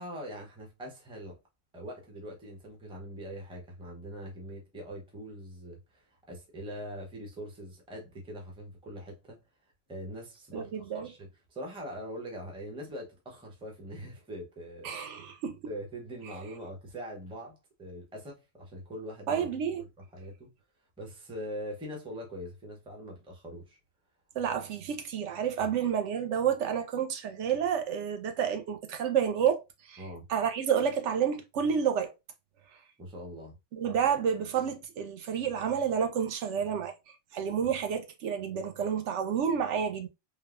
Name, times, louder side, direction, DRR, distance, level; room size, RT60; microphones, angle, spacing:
voice 1, 0.0-1.4 1.7-9.4 9.9-15.0 15.3-15.4 15.7-19.5 19.8-20.5 21.0-23.8 30.0-30.3 33.0-33.6 37.6-37.7, equal, 5° right, 0.5 m, -42 dB
voice 2, 10.5-11.1 14.8-15.6 19.3-19.8 24.4-29.6 29.9-30.0 30.3-32.1 33.7-36.9 37.3-40.1, right 8 dB, 75° right, 0.9 m, -29 dB
3.2 x 2.1 x 2.4 m
omnidirectional pair, 1.2 m